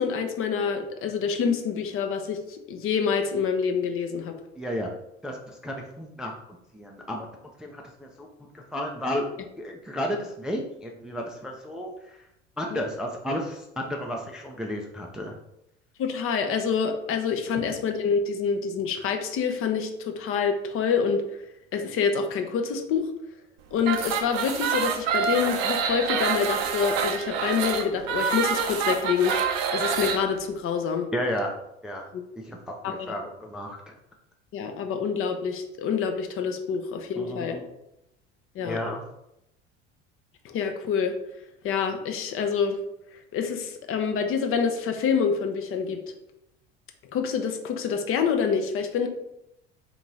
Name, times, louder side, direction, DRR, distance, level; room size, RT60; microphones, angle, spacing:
voice 1, 0.0-4.3 12.7-12.8 16.0-21.2 21.7-23.1 23.7-31.1 32.1-32.2 32.8-33.1 34.5-37.6 38.5-38.8 40.4-41.1 41.6-42.8 43.3-46.0 47.1-49.1, left 6 dB, 40° left, 5 dB, 0.7 m, -27 dB
voice 2, 4.6-4.9 5.2-6.3 6.7-7.3 7.6-8.3 8.5-9.3 9.6-12.2 12.6-15.4 17.6-17.7 31.1-31.5 31.8-32.0 32.4-33.9 37.2-37.6 38.6-39.0, equal, ahead, 0 dB, 0.4 m, -32 dB
sound 1, 23.8-30.2, right 6 dB, 55° right, 0.6 m, -27 dB
3.6 x 2.9 x 3.9 m, 0.84 s
figure-of-eight pair, 65°, 35 cm